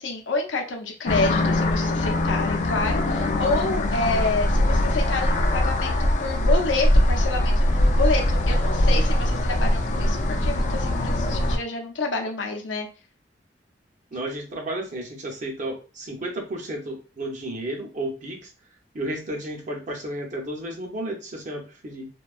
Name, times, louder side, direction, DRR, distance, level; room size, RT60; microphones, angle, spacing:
voice 1, 0.0-12.9, left 2 dB, 85° left, 3 dB, 0.6 m, -28 dB
sound 1, 1.1-11.6, left 1 dB, 40° left, 0.3 m, -22 dB
voice 2, 14.1-18.5 18.9-22.1, right 1 dB, 40° right, 1 dB, 0.7 m, -32 dB
2.6 x 2.2 x 2.3 m, 0.34 s
head